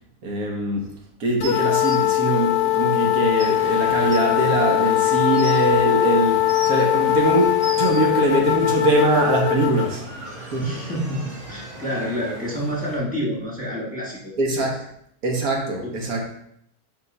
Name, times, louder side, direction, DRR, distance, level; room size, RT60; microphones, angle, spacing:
voice 1, 0.2-0.9 1.2-10.2 10.5-10.6 14.4-14.7 15.2-16.3, right 2 dB, 70° right, 0 dB, 1.5 m, -22 dB
sound 1, 1.4-9.9, left 15 dB, 65° left, 0.8 m, -21 dB
sound 2, 1.4-2.0 3.0-3.1 3.4-3.5 4.1-4.2 5.0-5.6 6.2-6.9 7.4-8.0 9.0-9.1, right 3 dB, 55° right, 0.6 m, -35 dB
sound 3, 3.4-13.0, equal, 85° right, 2.5 m, -39 dB
voice 2, 10.6-14.8 15.8-16.1, equal, 5° left, -4 dB, 1.4 m, -29 dB
4.9 x 3.7 x 5.2 m, 0.72 s
omnidirectional pair, 1.6 m